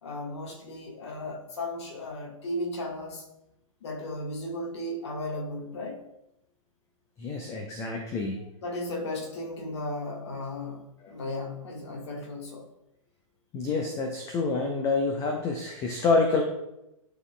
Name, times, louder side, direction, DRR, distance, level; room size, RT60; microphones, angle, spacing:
voice 1, 0.0-3.2 3.8-6.0 8.6-12.7, left 1 dB, 50° left, 0 dB, 1.6 m, -35 dB
voice 2, 7.2-8.4 11.0-11.1 13.5-16.4, left 3 dB, 15° left, 3 dB, 0.5 m, -27 dB
11.0 x 3.9 x 2.2 m, 0.87 s
figure-of-eight pair, 115°, 18 cm